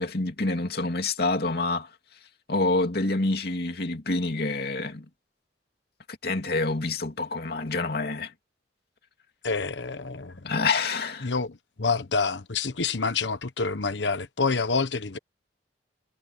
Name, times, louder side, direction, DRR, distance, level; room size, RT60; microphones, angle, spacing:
voice 1, 0.0-1.9 2.5-5.1 6.2-8.3 10.4-11.3, left 3 dB, 60° left, 2.7 m, -27 dB
voice 2, 9.4-10.4 11.2-15.2, left 4 dB, 80° left, 1.1 m, -27 dB
head